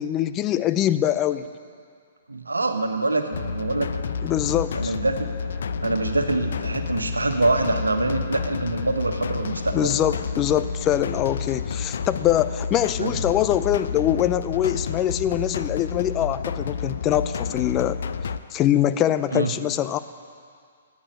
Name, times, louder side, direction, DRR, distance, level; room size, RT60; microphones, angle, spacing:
voice 1, 0.0-1.5 4.2-4.9 9.7-18.0 18.5-20.0, left 11 dB, 25° left, 12 dB, 0.6 m, -23 dB
voice 2, 2.3-3.9 4.4-5.3 5.8-10.0 13.0-13.2 19.3-19.5, right 2 dB, 85° right, 6 dB, 1.4 m, -25 dB
sound 1, 3.3-18.4, left 5 dB, 65° left, 0.7 m, -30 dB
14.5 x 9.8 x 9.3 m, 2.2 s
figure-of-eight pair, 125°, 0 cm